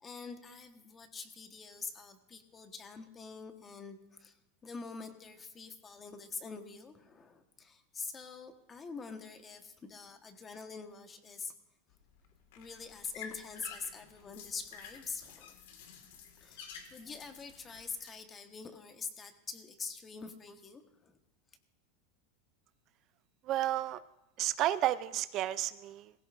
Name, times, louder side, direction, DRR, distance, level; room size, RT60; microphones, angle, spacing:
voice 1, 0.0-4.4 4.6-11.5 12.6-15.6 16.4-21.2, left 5 dB, 20° left, 7 dB, 1.2 m, -45 dB
sound 1, 11.9-18.1, left 7 dB, 75° left, 1.8 m, -51 dB
voice 2, 23.4-24.0 24.4-26.1, right 13 dB, 40° right, 15 dB, 0.4 m, -32 dB
18.5 x 16.5 x 2.5 m, 0.92 s
supercardioid pair, 135°, 0 cm